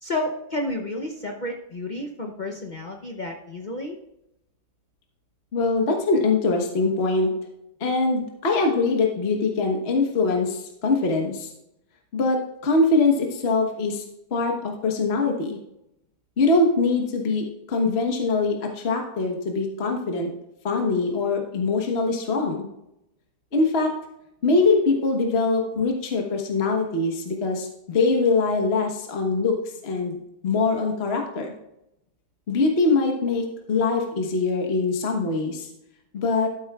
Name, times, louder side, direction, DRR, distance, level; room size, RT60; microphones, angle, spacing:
voice 1, 0.0-4.0, left 1 dB, 60° left, 1 dB, 0.4 m, -31 dB
voice 2, 5.5-7.3 7.8-11.5 12.1-14.0 14.3-15.6 16.4-20.3 20.6-22.7 23.5-23.9 24.4-29.5 29.8-30.2 30.4-31.5 32.5-35.7 36.1-36.5, left 3 dB, 35° left, 2 dB, 1.3 m, -23 dB
13.0 x 8.3 x 2.4 m, 0.82 s
omnidirectional pair, 2.1 m